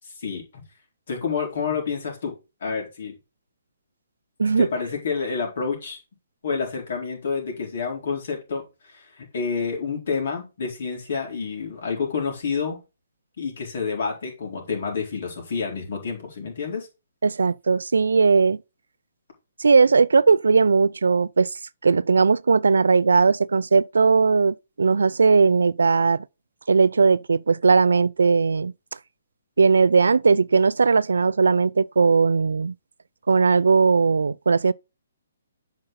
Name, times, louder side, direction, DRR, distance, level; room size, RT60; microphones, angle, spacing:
voice 1, 0.2-0.6 1.1-2.3 2.6-3.2 4.6-6.0 6.4-12.8 13.4-16.9, left 5 dB, 60° left, 4.3 m, -29 dB
voice 2, 17.2-18.6 19.6-26.2 26.7-28.7 29.6-32.7 33.3-34.7, right 4 dB, 80° right, 0.4 m, -18 dB
7.9 x 5.2 x 4.1 m
hypercardioid pair, 140°, 0 cm